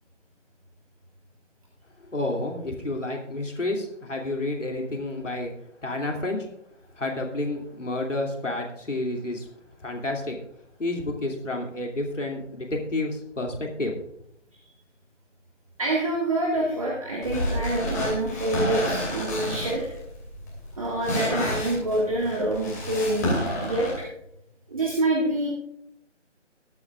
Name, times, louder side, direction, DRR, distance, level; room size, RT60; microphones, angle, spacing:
voice 1, 2.1-5.5 5.8-6.5 7.0-9.5 9.8-10.4 10.8-13.9, left 2 dB, 75° left, 1 dB, 2.8 m, -30 dB
voice 2, 15.8-19.9 20.8-23.3 23.6-24.1 24.7-25.5, right 1 dB, 30° right, -3 dB, 1.9 m, -26 dB
sound 1, 17.2-24.0, left 1 dB, 15° left, 2.7 m, -30 dB
21.5 x 8.6 x 2.5 m, 0.75 s
figure-of-eight pair, 165°, 37 cm